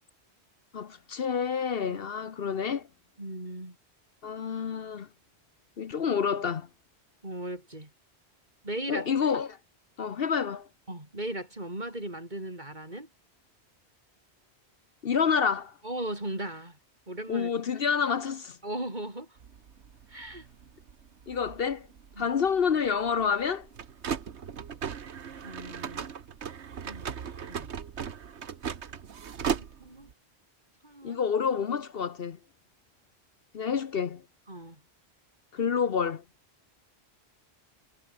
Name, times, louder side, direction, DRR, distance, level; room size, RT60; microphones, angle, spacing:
voice 1, 0.7-2.9 4.2-5.1 5.8-6.7 8.9-9.6 10.0-10.7 15.0-15.7 17.3-18.6 21.3-21.9 22.2-23.7 31.0-32.4 33.5-34.2 35.5-36.2, left 6 dB, 60° left, 1.1 m, -28 dB
voice 2, 3.2-3.8 7.2-7.9 8.6-9.1 10.9-13.1 15.8-16.8 17.1-17.5 18.6-19.4 20.1-20.5 22.1-22.3 25.4-26.1 26.8-27.7 29.5-30.1 30.8-31.2 34.5-34.8, right 1 dB, 45° right, 6.0 m, -38 dB
sound 1, 19.4-30.1, right 7 dB, 85° right, 1.4 m, -38 dB
omnidirectional pair, 1.1 m